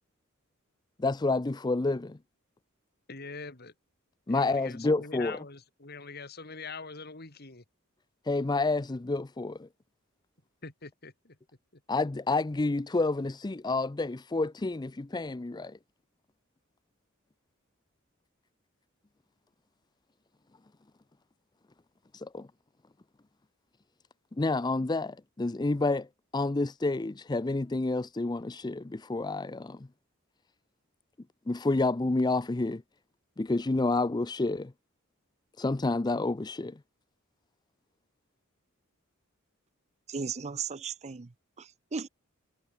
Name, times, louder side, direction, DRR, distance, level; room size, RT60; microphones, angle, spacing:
voice 1, 1.0-2.2 4.3-5.4 8.2-9.7 11.9-15.8 22.1-22.5 24.4-26.1 26.3-29.9 31.5-32.8 33.4-34.7 35.6-36.8, left 2 dB, 20° left, 0.5 m, -29 dB
voice 2, 3.1-3.7 4.3-7.6 10.6-11.4 11.7-11.8, left 4 dB, 50° left, 3.0 m, -43 dB
voice 3, 40.1-42.1, right 5 dB, 30° right, 0.6 m, -36 dB
head